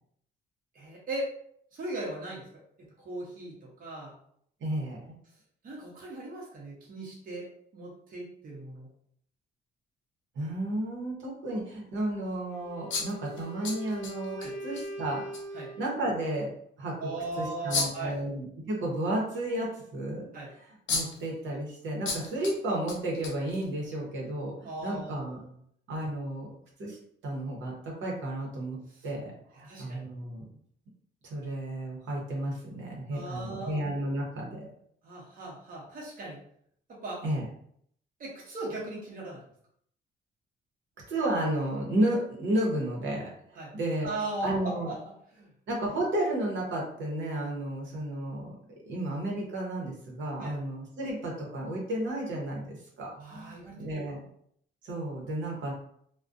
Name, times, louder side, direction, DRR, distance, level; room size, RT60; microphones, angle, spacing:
voice 1, 0.7-1.3 1.7-2.5 3.0-4.1 5.6-8.9 14.4-14.6 15.5-15.7 17.0-18.2 20.3-20.5 24.6-25.3 28.9-29.1 29.7-30.0 33.1-33.8 35.0-36.4 36.9-37.2 38.2-39.4 43.6-43.7 44.0-45.5 50.4-50.6 53.2-54.2, right 2 dB, 45° right, -3 dB, 0.7 m, -38 dB
voice 2, 4.6-5.2 10.3-15.3 15.8-16.5 16.8-17.1 17.4-20.3 20.6-25.4 25.9-26.5 26.8-27.0 27.2-28.8 29.0-30.4 31.2-34.7 37.2-37.4 41.1-44.1 44.4-44.9 45.7-48.6 48.8-54.2 54.8-55.7, right 1 dB, 70° right, -2 dB, 0.8 m, -32 dB
Wind instrument woodwind instrument, 12.4-16.0, right 2 dB, 5° left, 0.7 m, -41 dB
sound 1, 12.9-14.5 14.7-14.8 15.3-15.4 17.7-18.1 20.4-20.5 20.9-21.3 22.0-22.5 22.9-23.8, left 4 dB, 75° left, 0.6 m, -32 dB
2.4 x 2.2 x 2.5 m, 0.67 s
cardioid pair, 90°, 20 cm